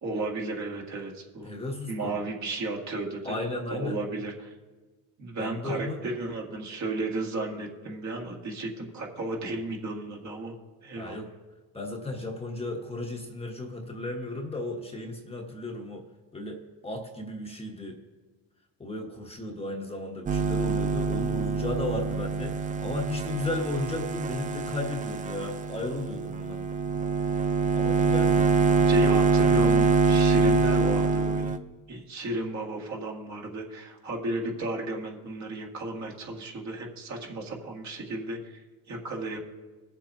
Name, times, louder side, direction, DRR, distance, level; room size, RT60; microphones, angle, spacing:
voice 1, 0.0-1.5 1.9-3.4 3.7-4.5 5.2-10.5 10.8-11.2 28.9-31.5 31.9-39.4, right 2 dB, 45° right, -1 dB, 1.9 m, -34 dB
voice 2, 1.4-2.2 3.2-4.0 5.4-6.0 11.0-11.3 11.7-16.0 16.3-18.0 18.8-26.6 27.7-28.5, left 2 dB, 15° left, 1 dB, 1.1 m, -35 dB
sound 1, 20.3-31.6, right 5 dB, 20° right, 0.4 m, -25 dB
22.0 x 7.3 x 2.7 m, 1.2 s
cardioid pair, 105°, 38 cm